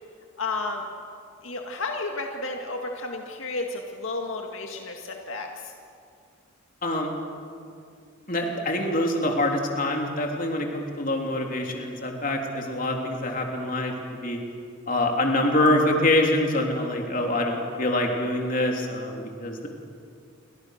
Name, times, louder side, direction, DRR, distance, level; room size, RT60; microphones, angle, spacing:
voice 1, 0.4-0.8 1.4-5.7, left 3 dB, 75° left, 2 dB, 2.0 m, -32 dB
voice 2, 6.8-7.1 8.3-13.9 14.2-14.4 14.9-19.7, left 1 dB, 40° left, 2 dB, 3.3 m, -25 dB
29.0 x 24.5 x 6.6 m, 2.3 s
head